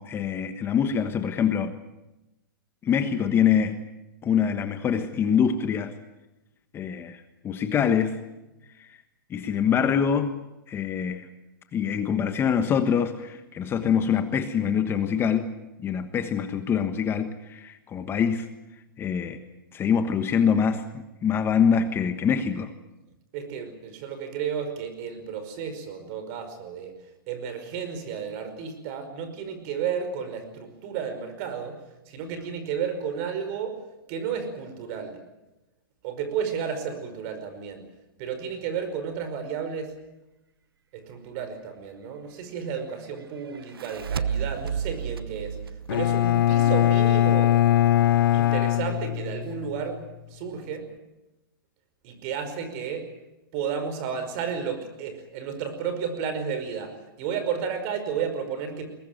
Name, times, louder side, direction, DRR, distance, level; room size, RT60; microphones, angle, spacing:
voice 1, 0.0-1.7 2.8-3.8 4.2-5.9 6.7-8.2 8.8-8.9 9.3-10.3 10.7-11.3 11.7-15.5 15.8-18.5 19.0-19.4 19.7-22.7, left 7 dB, 20° left, 9 dB, 1.3 m, -24 dB
voice 2, 23.3-31.8 32.1-35.2 36.0-37.9 38.2-39.9 40.9-47.6 48.3-50.0 50.3-50.9 52.0-53.1 53.5-58.9, right 7 dB, 40° right, 9 dB, 5.2 m, -32 dB
sound 1, 43.5-46.9, right 7 dB, 90° right, 1.0 m, -32 dB
Bowed string instrument, 45.9-49.7, left 12 dB, 70° left, 0.9 m, -21 dB
22.5 x 19.0 x 9.3 m, 0.98 s
hypercardioid pair, 135°, 12 cm